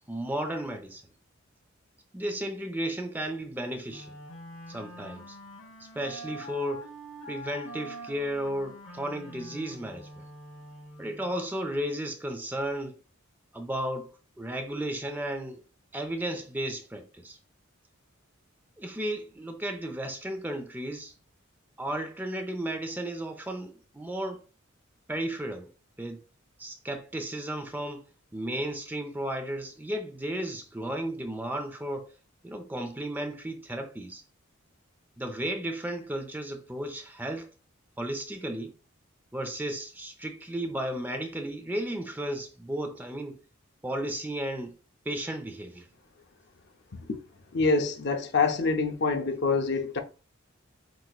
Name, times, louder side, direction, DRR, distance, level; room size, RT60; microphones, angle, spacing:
voice 1, 0.1-1.0 2.1-4.1 4.7-5.4 5.8-6.9 7.3-10.2 11.0-13.0 13.5-15.6 15.9-17.4 18.8-21.1 21.8-24.4 25.1-25.7 26.0-26.2 26.6-28.0 28.3-32.1 32.4-34.2 35.2-37.5 38.0-38.7 39.3-43.4 43.8-44.8 45.1-45.9, right 1 dB, 10° right, 0.5 m, -34 dB
Wind instrument woodwind instrument, 3.9-11.4, equal, 90° left, 2.2 m, -45 dB
voice 2, 47.5-50.0, left 4 dB, 55° left, 0.7 m, -26 dB
7.6 x 2.9 x 2.3 m
head